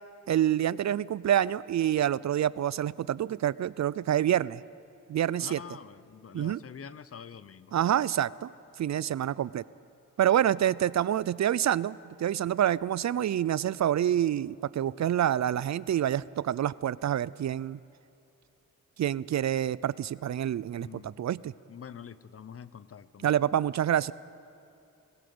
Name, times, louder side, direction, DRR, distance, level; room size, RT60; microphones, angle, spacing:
voice 1, 0.3-4.6 5.1-5.6 6.3-6.6 7.7-8.5 8.8-9.6 10.2-17.8 19.0-21.5 23.2-24.1, right 11 dB, 60° right, 20 dB, 0.4 m, -27 dB
voice 2, 5.4-7.8 20.8-21.3 21.7-23.5, left 7 dB, 45° left, 16 dB, 0.7 m, -46 dB
20.5 x 20.0 x 7.9 m, 2.7 s
wide cardioid pair, 100°, 32 cm